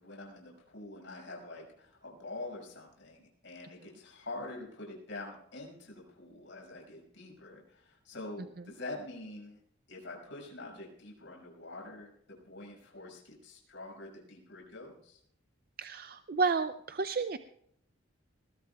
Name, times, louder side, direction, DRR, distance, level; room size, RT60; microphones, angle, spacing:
voice 1, 0.0-9.6 9.9-15.2, left 2 dB, 65° left, -2 dB, 6.1 m, -46 dB
voice 2, 15.8-17.4, right 4 dB, 45° right, 10 dB, 0.5 m, -31 dB
21.0 x 20.0 x 2.4 m, 0.70 s
head